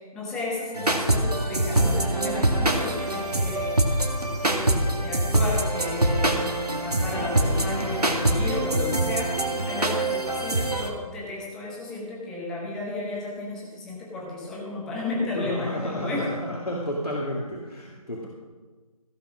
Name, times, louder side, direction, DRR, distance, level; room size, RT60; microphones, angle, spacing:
voice 1, 0.0-3.8 4.4-16.3, left 2 dB, 5° left, -4 dB, 0.8 m, -33 dB
sound 1, 0.7-10.9, right 1 dB, 90° right, 1.8 m, -24 dB
voice 2, 15.3-18.3, left 1 dB, 80° left, -3 dB, 2.0 m, -31 dB
15.5 x 5.9 x 6.1 m, 1.4 s
figure-of-eight pair, 160°, 19 cm